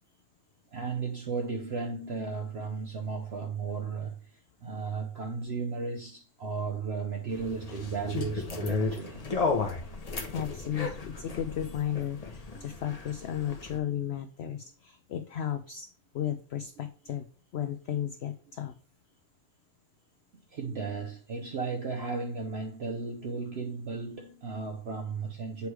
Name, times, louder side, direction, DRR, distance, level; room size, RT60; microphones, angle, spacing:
voice 1, 0.7-9.3 12.5-12.6 20.5-25.7, right 4 dB, 55° right, 0.9 m, -35 dB
sound 1, 7.3-13.8, left 4 dB, 30° left, 0.8 m, -34 dB
voice 2, 10.3-17.3 17.5-18.7, left 10 dB, 65° left, 0.7 m, -34 dB
8.0 x 3.2 x 4.7 m
omnidirectional pair, 1.5 m